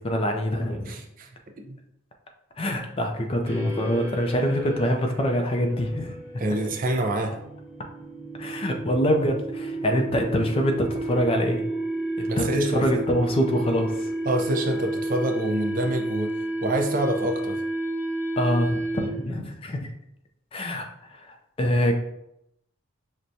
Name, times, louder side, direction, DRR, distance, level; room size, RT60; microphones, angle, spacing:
voice 1, 0.0-0.9 2.6-6.2 8.4-11.6 12.2-14.1 18.4-19.9 20.5-22.0, equal, 25° left, 4 dB, 0.4 m, -25 dB
voice 2, 0.9-1.3 1.6-1.8 6.4-7.4 12.3-13.0 14.3-16.3 16.6-17.6, right 1 dB, 40° right, 3 dB, 0.5 m, -26 dB
sound 1, 3.5-19.4, right 1 dB, 15° right, 1.0 m, -31 dB
6.0 x 2.2 x 2.6 m, 0.80 s
head